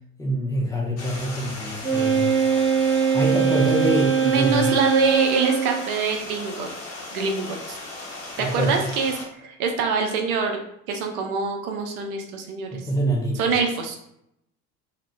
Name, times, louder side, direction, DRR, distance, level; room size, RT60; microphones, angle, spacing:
voice 1, 0.2-2.4 3.1-4.7 8.4-8.8 12.7-13.5, right 1 dB, 10° left, -2 dB, 0.3 m, -25 dB
Stream, 1.0-9.3, left 2 dB, 35° left, 0.8 m, -37 dB
Wind instrument woodwind instrument, 1.8-5.9, right 6 dB, 25° right, 1.0 m, -21 dB
voice 2, 4.2-6.7 7.1-7.8 8.4-9.1 9.4-10.6 10.9-12.8 13.4-14.0, right 5 dB, 65° right, 3 dB, 0.6 m, -25 dB
2.8 x 2.1 x 3.0 m, 0.77 s
figure-of-eight pair, 70°, 47 cm